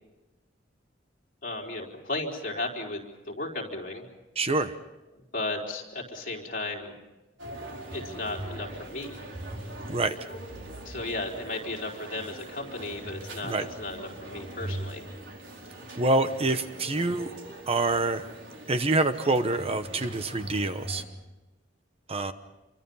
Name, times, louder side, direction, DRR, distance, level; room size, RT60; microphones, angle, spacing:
voice 1, 1.4-3.0 3.3-4.1 5.1-7.0 7.9-9.2 10.8-15.1, left 2 dB, 50° left, 0 dB, 4.4 m, -35 dB
voice 2, 4.4-4.7 9.9-10.1 13.5-13.6 16.0-17.3 17.7-18.2 18.7-21.0 22.1-22.3, right 2 dB, 30° right, 10 dB, 1.0 m, -26 dB
sound 1, 7.4-21.0, right 1 dB, 90° right, 4.7 m, -41 dB
27.5 x 24.0 x 5.6 m, 1.1 s
head